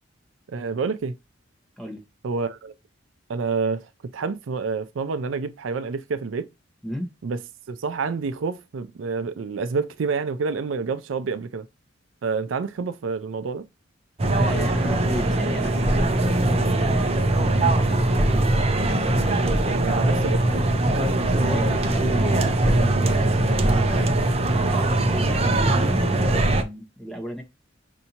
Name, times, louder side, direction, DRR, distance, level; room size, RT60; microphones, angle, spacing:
voice 1, 0.5-1.1 2.2-2.7 3.3-6.5 7.2-7.4 7.7-11.6 12.2-13.7 19.7-20.5, right 4 dB, 85° right, 0.4 m, -28 dB
sound 1, 14.2-26.6, right 2 dB, 30° right, 0.6 m, -21 dB
voice 2, 14.4-18.6 21.4-24.1 24.5-27.4, equal, ahead, 1.2 m, -35 dB
5.5 x 2.7 x 2.8 m
head